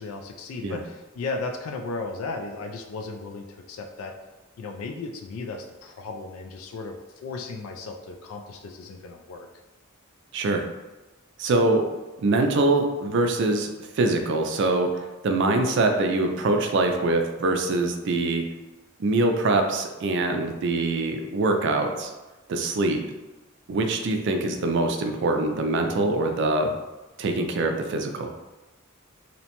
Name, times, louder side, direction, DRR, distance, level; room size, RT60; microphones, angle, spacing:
voice 1, 0.0-4.2 4.6-9.5, left 3 dB, 85° left, 4 dB, 0.3 m, -35 dB
voice 2, 10.3-10.7 11.4-11.9 12.2-13.7 14.0-14.9 15.2-18.4 19.0-22.1 22.5-23.0 23.7-26.7 27.2-28.3, right 2 dB, 60° right, 4 dB, 0.3 m, -23 dB
2.8 x 2.1 x 2.9 m, 1.1 s
head